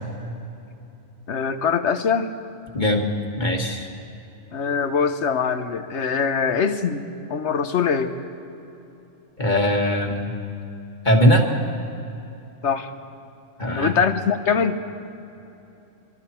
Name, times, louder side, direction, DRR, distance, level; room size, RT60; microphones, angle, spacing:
voice 1, 1.3-2.3 4.5-7.0 7.3-8.1 12.6-12.9 13.8-14.8, left 6 dB, 65° left, 9 dB, 1.3 m, -22 dB
voice 2, 2.7-3.1 3.4-3.9 9.4-10.3 11.1-11.5 13.6-14.0, equal, 35° left, 1 dB, 2.0 m, -20 dB
27.0 x 23.0 x 4.5 m, 2.8 s
omnidirectional pair, 1.3 m